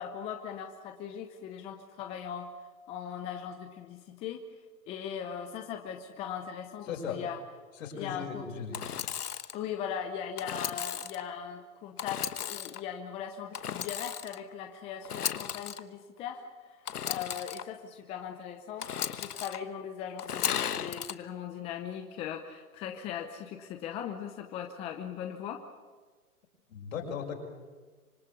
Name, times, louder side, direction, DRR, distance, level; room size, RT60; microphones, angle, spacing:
voice 1, 0.0-2.5 2.9-4.4 4.9-7.4 7.9-8.5 9.5-18.9 19.2-25.6, left 8 dB, 15° left, 5 dB, 0.8 m, -39 dB
voice 2, 6.9-7.2 7.8-8.8 26.7-27.4, left 6 dB, 60° left, 1 dB, 6.2 m, -37 dB
Engine / Sawing, 8.7-9.6 10.4-11.2 12.0-12.8 13.5-14.4 15.0-15.8 16.9-17.6 18.8-19.6 20.2-21.1, left 9 dB, 85° left, 1.3 m, -35 dB
26.0 x 20.0 x 8.4 m, 1.4 s
hypercardioid pair, 145°, 45 cm